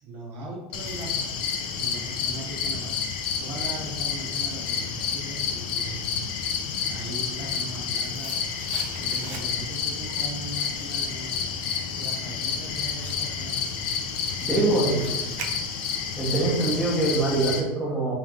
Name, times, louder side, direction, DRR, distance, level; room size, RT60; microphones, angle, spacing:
voice 1, 0.0-1.4 1.7-3.0 3.4-6.1 6.9-8.4 9.0-11.3 11.8-13.6 14.3-15.4, right 2 dB, 45° right, -4 dB, 1.1 m, -39 dB
sound 1, 0.7-17.6, left 6 dB, 85° left, 0.6 m, -30 dB
sound 2, 7.9-9.9 10.2-16.1 16.4-16.5, right 6 dB, 60° right, 0.6 m, -44 dB
voice 2, 14.5-14.9 16.2-18.1, right 2 dB, 5° right, -7 dB, 1.2 m, -23 dB
3.3 x 3.2 x 3.7 m, 1.1 s
supercardioid pair, 150°, 5 cm